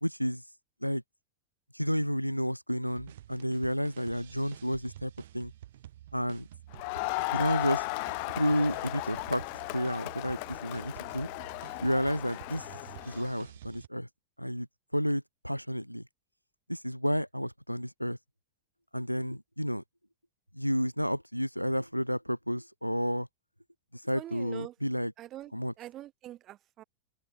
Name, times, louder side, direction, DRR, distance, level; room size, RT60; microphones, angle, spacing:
voice 1, 0.0-0.4 0.8-1.0 1.7-5.5 6.1-6.5 7.3-7.8 8.4-9.4 9.7-11.3 11.8-12.7 13.0-14.1 14.4-14.7 14.9-16.0 16.7-18.2 18.9-19.8 20.5-23.3 23.9-25.1 25.5-25.7, equal, 90° left, 0.5 m, -31 dB
sound 1, 2.9-13.9, right 13 dB, 60° right, 3.3 m, -50 dB
Crowd, 6.7-13.3, left 34 dB, 45° left, 0.6 m, -36 dB
voice 2, 24.1-24.7 25.2-25.5 25.8-26.8, right 13 dB, 35° right, 0.3 m, -44 dB
open air
figure-of-eight pair, 90°, 0 cm